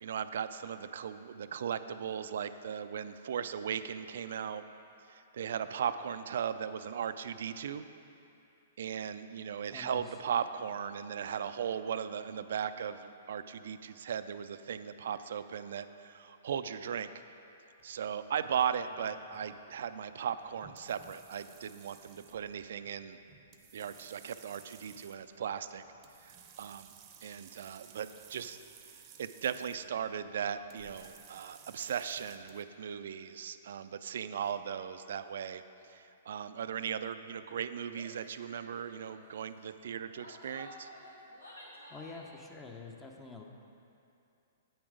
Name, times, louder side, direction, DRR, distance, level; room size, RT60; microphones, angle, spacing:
voice 1, 0.0-4.6 5.1-7.9 8.8-17.1 17.8-23.2 23.7-25.8 26.2-26.9 27.2-28.6 29.2-40.9, right 8 dB, 65° right, 11 dB, 0.3 m, -37 dB
voice 2, 9.7-10.0 41.9-43.4, left 4 dB, 15° left, 2 dB, 0.8 m, -47 dB
sound 1, 17.8-32.6, right 8 dB, 30° right, 0.7 m, -58 dB
Female speech woman speaking / Yell, 37.9-38.2 38.5-38.7 38.9-39.3 39.9-42.4, left 1 dB, 85° left, 1.6 m, -52 dB
8.6 x 6.1 x 5.0 m, 2.7 s
figure-of-eight pair, 115°, 0 cm